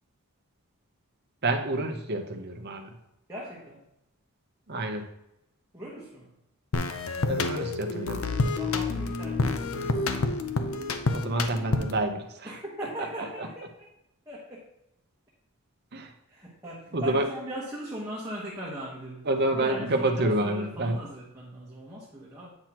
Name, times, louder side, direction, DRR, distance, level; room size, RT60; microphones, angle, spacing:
voice 1, 1.4-2.9 4.7-5.0 7.3-8.2 11.1-12.5 13.4-13.5 15.9-16.1 16.9-17.2 19.3-21.0, right 2 dB, 45° right, 5 dB, 0.8 m, -28 dB
voice 2, 3.3-3.8 5.7-6.3 8.6-10.0 12.4-13.9 14.3-14.7 16.3-22.5, equal, 15° right, -6 dB, 1.2 m, -39 dB
sound 1, 6.7-12.1, left 3 dB, 65° left, 0.6 m, -28 dB
8.8 x 5.9 x 3.0 m, 0.84 s
head